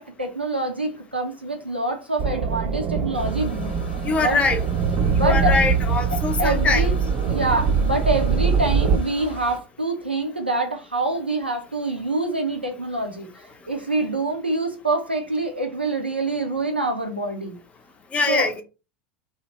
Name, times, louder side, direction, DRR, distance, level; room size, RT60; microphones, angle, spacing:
voice 1, 0.0-4.4 5.2-5.6 6.4-6.9 7.3-13.3 13.7-17.6 18.3-18.5, right 2 dB, 90° right, 0.5 m, -26 dB
sound 1, 2.2-9.0, right 5 dB, 35° right, 0.3 m, -23 dB
sound 2, 3.1-9.6, left 1 dB, 75° left, 0.8 m, -40 dB
voice 2, 4.0-4.6 5.2-6.9 18.1-18.6, left 4 dB, 20° left, 0.5 m, -23 dB
2.7 x 2.0 x 2.9 m
figure-of-eight pair, 80°, 6 cm